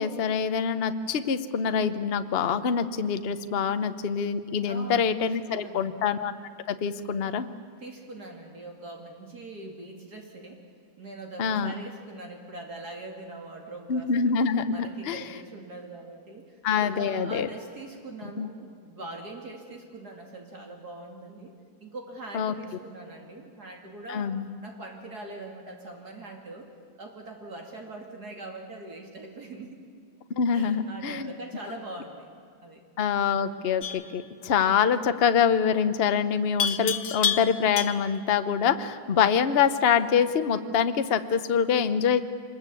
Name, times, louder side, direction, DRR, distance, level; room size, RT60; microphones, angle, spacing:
voice 1, 0.0-6.3 6.7-7.5 11.4-11.7 13.9-15.2 16.6-17.5 18.4-18.5 22.3-22.5 24.1-24.5 30.4-31.3 33.0-42.2, left 7 dB, 45° left, 10 dB, 0.9 m, -25 dB
voice 2, 4.6-6.1 7.8-10.6 11.0-14.3 14.7-21.5 21.8-24.3 24.6-26.7 27.0-29.8 30.5-32.3 32.5-32.8, right 2 dB, 55° right, 1 dB, 2.9 m, -42 dB
Livestock farm animals working animals, 33.8-34.1 36.6-38.2, left 7 dB, 80° left, 1.8 m, -29 dB
25.0 x 20.5 x 8.5 m, 2.2 s
omnidirectional pair, 2.1 m